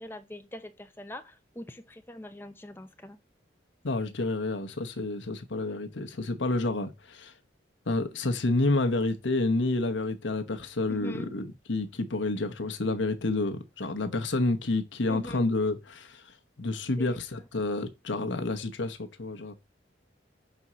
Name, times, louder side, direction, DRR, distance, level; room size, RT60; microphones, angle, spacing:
voice 1, 0.0-3.2 10.9-11.3 15.1-15.5 17.0-17.2, left 1 dB, 10° left, 0.6 m, -42 dB
voice 2, 3.8-7.3 7.9-16.2 16.6-19.5, left 2 dB, 80° left, 0.9 m, -29 dB
5.2 x 4.2 x 6.1 m
head